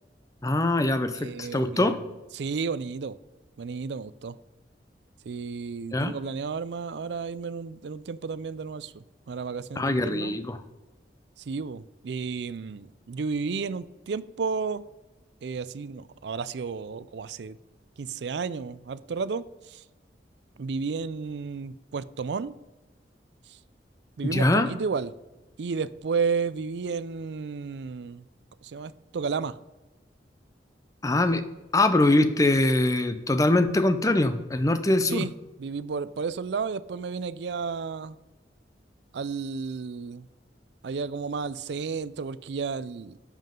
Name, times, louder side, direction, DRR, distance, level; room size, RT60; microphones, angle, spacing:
voice 1, 0.4-2.0 5.9-6.1 9.8-10.6 24.2-24.7 31.0-31.4 31.7-35.3, left 2 dB, 20° left, 0.6 m, -23 dB
voice 2, 1.1-2.0 2.3-3.2 3.6-4.4 5.3-10.4 11.5-14.8 15.4-17.6 18.0-19.8 20.6-22.5 24.2-25.1 25.6-28.2 28.6-29.6 35.0-35.3 35.6-38.2 39.1-40.3 40.8-43.2, right 5 dB, 70° right, 0.4 m, -32 dB
11.0 x 7.4 x 3.7 m
head